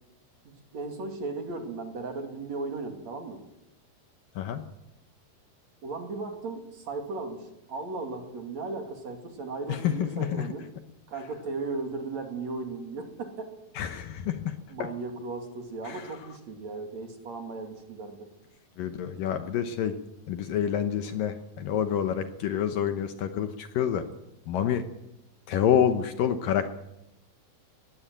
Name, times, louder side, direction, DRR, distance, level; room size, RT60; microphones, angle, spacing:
voice 1, 0.4-3.4 5.8-10.6 11.1-13.5 14.7-18.3, right 3 dB, 45° right, 4 dB, 3.3 m, -36 dB
voice 2, 9.7-10.5 13.7-14.9 15.8-16.1 18.8-20.0 20.3-24.1 24.5-24.9 25.5-26.7, left 9 dB, 70° left, 8 dB, 2.4 m, -28 dB
21.0 x 15.5 x 9.0 m, 0.89 s
omnidirectional pair, 4.6 m